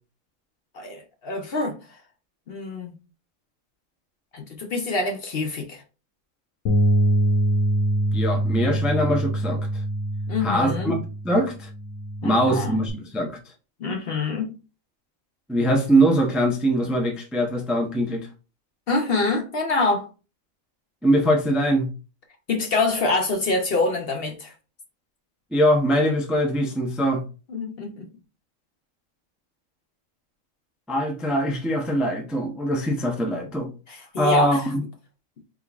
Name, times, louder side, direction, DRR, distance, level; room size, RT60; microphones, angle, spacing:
voice 1, 0.7-1.8 2.5-2.9 4.3-5.8 10.3-10.9 12.2-12.8 13.8-14.5 18.9-20.1 22.5-24.5 27.5-28.1 33.9-34.6, left 3 dB, 55° left, 0.8 m, -26 dB
Bass guitar, 6.7-12.9, right 1 dB, 80° left, 1.2 m, -24 dB
voice 2, 8.1-9.6 10.4-11.0 11.2-11.7 12.2-13.4 15.5-18.3 21.0-21.9 25.5-27.2 30.9-33.7 34.2-34.8, right 1 dB, ahead, 0.5 m, -22 dB
4.4 x 3.7 x 2.4 m
omnidirectional pair, 1.4 m